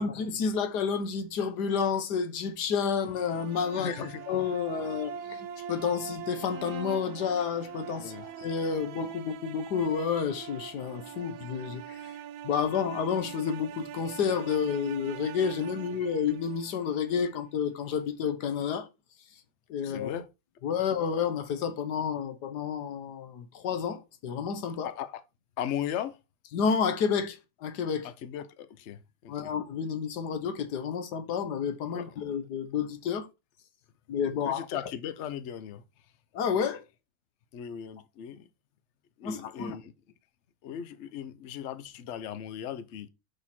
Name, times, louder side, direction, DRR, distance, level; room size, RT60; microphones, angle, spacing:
voice 1, 0.0-3.9 4.3-12.2 12.4-18.9 19.7-20.1 20.6-24.9 26.5-28.1 29.3-33.3 34.1-34.6 36.3-36.8 39.2-39.8, left 6 dB, 75° left, 1.6 m, -30 dB
sound 1, 3.0-17.2, right 8 dB, 75° right, 1.2 m, -42 dB
voice 2, 3.7-4.3 8.0-8.2 19.8-20.3 24.8-25.2 25.6-26.2 28.0-29.5 31.9-32.1 34.4-35.8 37.5-38.5 39.2-39.9 40.6-43.1, left 9 dB, 55° left, 0.9 m, -37 dB
6.7 x 5.4 x 4.4 m
omnidirectional pair, 1.8 m